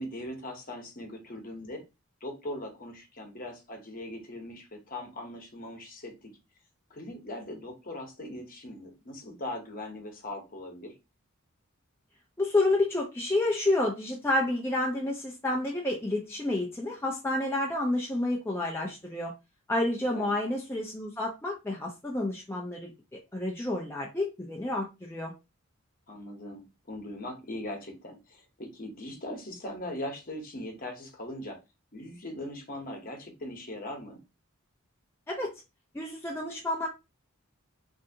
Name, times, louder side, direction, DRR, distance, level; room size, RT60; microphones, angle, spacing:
voice 1, 0.0-1.8 2.2-6.3 6.9-10.9 20.1-20.3 26.1-31.6 31.9-34.2, left 1 dB, 40° left, 1.0 m, -40 dB
voice 2, 12.4-19.3 19.7-22.9 23.3-25.3 35.3-35.5 35.9-36.9, left 2 dB, 10° left, 0.5 m, -29 dB
3.3 x 2.7 x 2.7 m
head